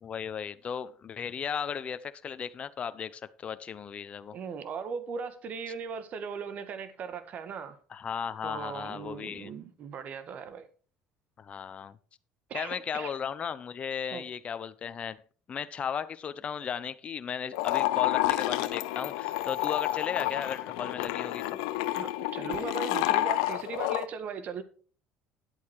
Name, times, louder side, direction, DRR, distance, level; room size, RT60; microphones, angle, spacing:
voice 1, 0.0-4.4 7.9-9.5 11.4-12.0 12.5-15.2 15.5-21.6, left 7 dB, 40° left, 0.8 m, -36 dB
voice 2, 4.3-7.8 8.4-10.7 12.5-13.1 14.1-14.2 21.9-24.6, right 6 dB, 50° right, 1.7 m, -38 dB
sound 1, 17.5-24.0, left 16 dB, 90° left, 0.7 m, -29 dB
11.0 x 8.4 x 4.8 m
supercardioid pair, 90°, 3 cm